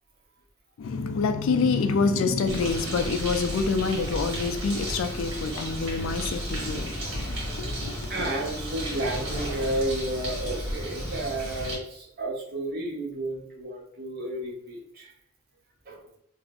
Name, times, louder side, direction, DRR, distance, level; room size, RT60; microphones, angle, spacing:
voice 1, 0.8-8.3, left 4 dB, 85° left, 0.4 m, -27 dB
Bird, 2.5-11.8, equal, 70° right, 1.0 m, -33 dB
voice 2, 8.1-15.1 15.9-16.0, right 1 dB, 50° right, 0.9 m, -32 dB
2.5 x 2.0 x 3.6 m
head